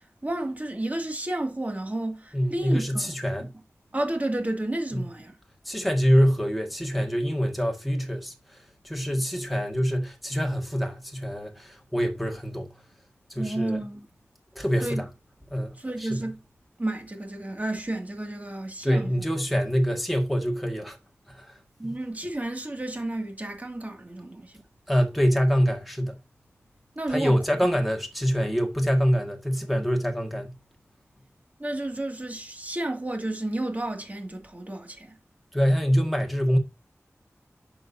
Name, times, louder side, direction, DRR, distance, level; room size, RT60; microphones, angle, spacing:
voice 1, 0.0-3.1 3.4-3.5 3.9-5.3 13.4-14.1 14.8-15.0 15.8-16.4 16.8-19.1 21.8-24.6 27.0-27.4 31.6-35.2, right 1 dB, 30° right, 2.4 m, -31 dB
voice 2, 2.3-3.5 4.9-5.1 5.7-12.7 13.3-13.8 14.6-15.1 15.5-16.3 18.8-21.0 21.3-21.6 24.9-26.2 27.1-30.5 35.5-36.6, equal, ahead, 1.9 m, -25 dB
11.0 x 7.0 x 2.7 m
wide cardioid pair, 70°, 5 cm